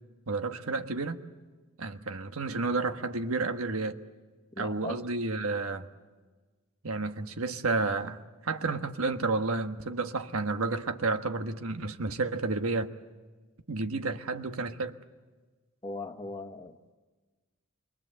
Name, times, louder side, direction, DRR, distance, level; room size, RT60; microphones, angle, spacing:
voice 1, 0.3-1.2 1.8-4.0 4.6-5.9 6.8-12.9 13.7-15.0, right 3 dB, 80° right, 1.3 m, -31 dB
voice 2, 4.5-5.0 15.8-16.9, left 2 dB, 20° left, 1.4 m, -39 dB
28.5 x 23.0 x 7.9 m
head